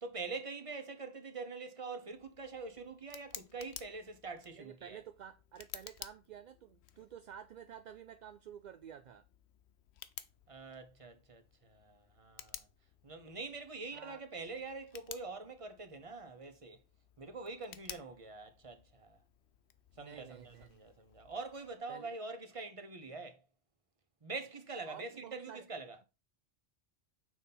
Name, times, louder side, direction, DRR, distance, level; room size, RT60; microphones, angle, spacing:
voice 1, 0.0-5.0 10.5-12.7 13.0-16.8 17.2-19.2 20.0-23.4 24.2-26.0, right 3 dB, 35° right, 1.0 m, -45 dB
Tick, 2.1-21.8, left 10 dB, 85° left, 0.9 m, -55 dB
voice 2, 4.5-9.2 13.9-14.2 20.0-20.8 21.9-22.2 24.9-25.7, right 9 dB, 55° right, 0.5 m, -51 dB
6.2 x 4.1 x 5.3 m
omnidirectional pair, 1.1 m